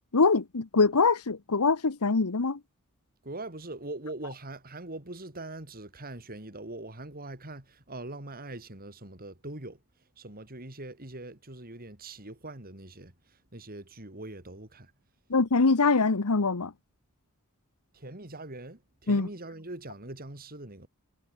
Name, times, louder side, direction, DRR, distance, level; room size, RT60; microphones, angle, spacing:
voice 1, 0.1-2.6 15.3-16.7 19.1-19.3, left 4 dB, 90° left, 1.1 m, -23 dB
voice 2, 3.2-9.8 10.2-14.9 17.9-20.9, right 2 dB, 40° right, 3.6 m, -42 dB
head